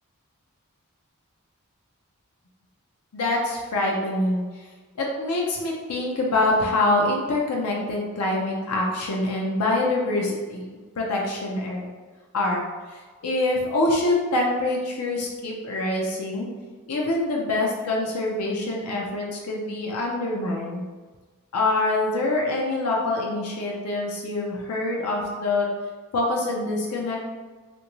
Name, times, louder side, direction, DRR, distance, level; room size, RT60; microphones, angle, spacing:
voice 1, 3.1-4.4 5.0-11.9 12.3-16.5 16.9-20.8 21.5-25.7 26.1-27.2, left 2 dB, 90° left, -1 dB, 0.5 m, -25 dB
3.3 x 2.6 x 3.0 m, 1.4 s
head